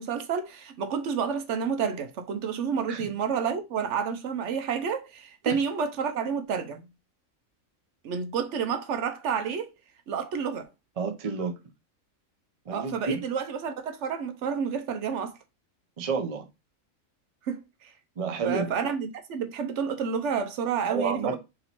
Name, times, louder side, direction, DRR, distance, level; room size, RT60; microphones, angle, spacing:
voice 1, 0.0-6.8 8.0-9.7 10.1-10.6 12.7-15.4 17.4-17.9 18.4-21.4, right 6 dB, 70° right, 0.9 m, -30 dB
voice 2, 11.0-11.5 12.7-13.2 16.0-16.4 18.2-18.7 20.9-21.4, right 5 dB, 45° right, 0.5 m, -30 dB
3.0 x 2.9 x 4.1 m
omnidirectional pair, 1.4 m